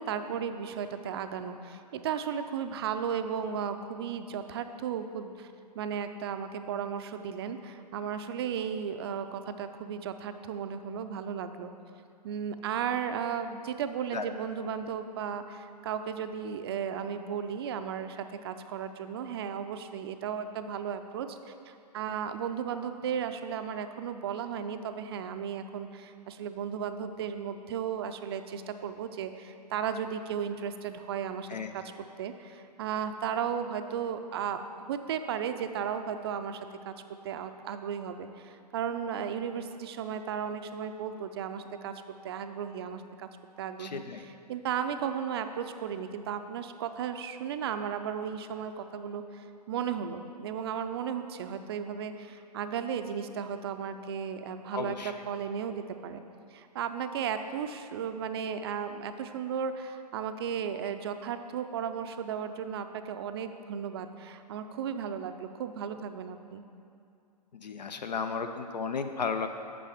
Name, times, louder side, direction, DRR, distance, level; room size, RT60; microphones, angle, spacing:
voice 1, 0.0-5.5 5.8-11.7 12.2-31.8 32.2-34.6 34.9-41.9 42.2-43.3 43.6-56.2 56.5-66.6, right 7 dB, 40° right, 8 dB, 0.4 m, -35 dB
voice 2, 43.8-44.2 54.7-55.1 67.6-69.5, left 5 dB, 80° left, 7 dB, 0.5 m, -34 dB
8.5 x 6.7 x 3.5 m, 2.5 s
figure-of-eight pair, 125°, 21 cm